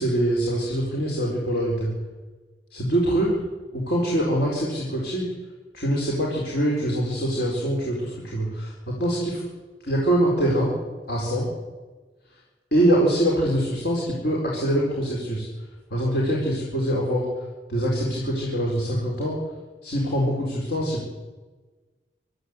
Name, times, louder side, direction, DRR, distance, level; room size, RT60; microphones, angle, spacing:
voice 1, 0.0-1.9 2.7-3.3 3.7-5.3 5.7-9.4 9.8-10.7 11.1-11.5 12.7-15.5 15.9-17.3 17.7-19.4 19.8-21.1, right 1 dB, 65° left, -3 dB, 4.4 m, -24 dB
24.0 x 13.5 x 8.2 m, 1.3 s
head